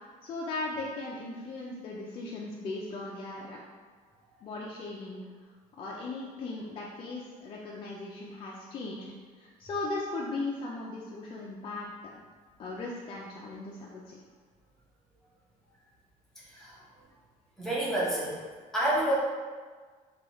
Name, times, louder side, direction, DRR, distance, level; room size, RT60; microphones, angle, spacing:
voice 1, 0.2-3.6 4.4-5.2 5.8-9.1 9.4-11.9 12.6-14.2, left 2 dB, 35° left, -4 dB, 0.4 m, -37 dB
voice 2, 16.4-16.8 17.6-18.4 18.7-19.1, right 1 dB, 5° left, -9 dB, 0.8 m, -29 dB
4.5 x 2.3 x 3.0 m, 1.5 s
cardioid pair, 170°, 15 cm